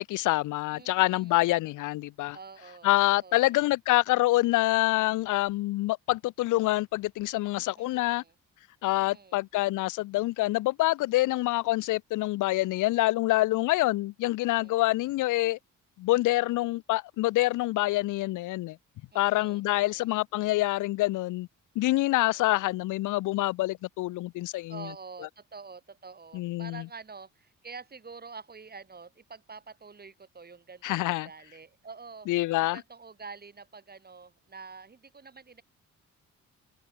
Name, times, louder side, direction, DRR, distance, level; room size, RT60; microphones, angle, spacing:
voice 1, 0.0-2.4 2.8-8.2 8.8-15.6 16.0-18.8 19.1-21.5 21.8-24.9 26.3-26.8 30.8-31.3 32.3-32.8, left 18 dB, 85° left, 0.8 m, -26 dB
voice 2, 0.7-1.4 2.3-3.6 7.7-8.3 8.8-9.4 14.4-14.9 19.1-20.2 22.2-22.7 24.7-32.3 32.6-35.6, right 4 dB, 30° right, 5.4 m, -47 dB
cardioid pair, 90°, 30 cm